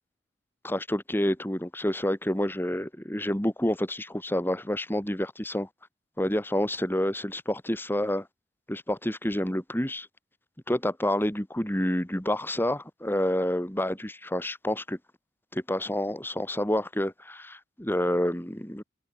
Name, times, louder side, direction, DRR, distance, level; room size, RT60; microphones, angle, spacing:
voice 1, 0.6-5.7 6.2-8.3 8.7-10.1 10.7-15.0 15.5-18.8, left 1 dB, 10° left, 2.5 m, -28 dB
head